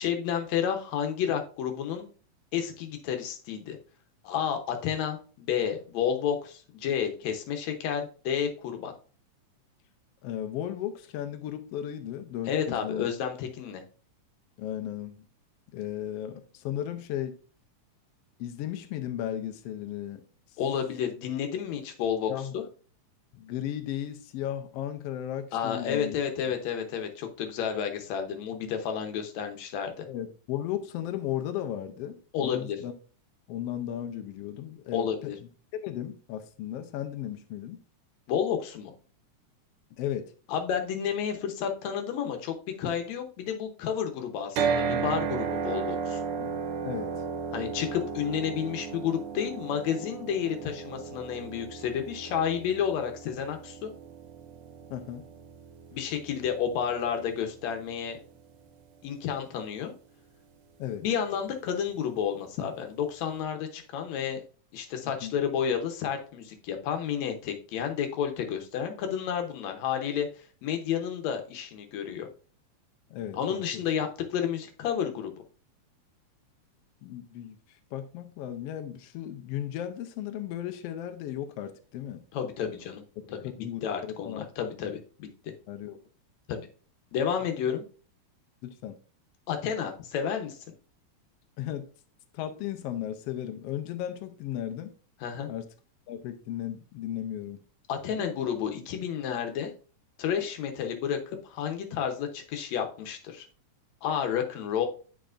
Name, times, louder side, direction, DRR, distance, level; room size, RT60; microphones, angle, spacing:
voice 1, 0.0-2.1 2.5-3.8 4.2-8.9 12.5-13.8 20.6-22.6 25.5-30.0 32.3-32.8 34.9-35.4 38.3-38.9 40.5-46.2 47.5-53.9 55.9-58.2 59.0-59.9 61.0-64.4 64.7-70.3 70.6-72.3 73.3-75.3 82.3-83.0 83.3-83.4 83.8-85.3 86.5-86.7 87.1-87.8 89.5-90.6 95.2-95.5 97.9-99.7 100.2-103.5 104.0-104.9, left 8 dB, 70° left, 2.1 m, -31 dB
voice 2, 10.2-13.1 14.6-15.3 15.7-17.4 18.4-20.2 22.3-22.6 23.3-26.2 30.1-32.9 33.5-35.3 35.8-37.8 40.0-40.3 46.4-46.6 46.8-47.1 54.9-55.2 60.8-61.0 65.0-65.3 73.1-73.8 77.0-77.6 77.9-82.2 83.4-84.5 85.7-86.0 87.6-87.8 88.6-88.9 91.6-91.9 92.3-94.9 95.5-95.7 96.1-97.6, left 11 dB, 85° left, 1.4 m, -35 dB
sound 1, 44.6-58.7, right 6 dB, 85° right, 2.2 m, -35 dB
9.2 x 5.0 x 2.5 m
omnidirectional pair, 3.5 m